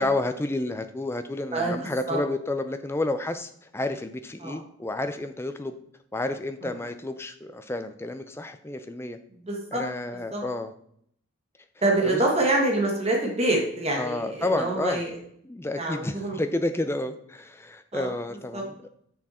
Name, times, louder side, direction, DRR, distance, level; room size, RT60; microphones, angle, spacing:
voice 1, 0.0-5.7 6.1-9.2 9.7-10.7 12.0-12.2 14.0-15.0 15.4-18.7, left 2 dB, 10° left, 9 dB, 0.4 m, -30 dB
voice 2, 9.5-9.8 10.3-10.4 11.8-15.2 15.8-16.4 17.9-18.1 18.5-18.6, right 2 dB, 30° right, 0 dB, 1.4 m, -26 dB
6.5 x 6.1 x 4.2 m, 0.68 s
head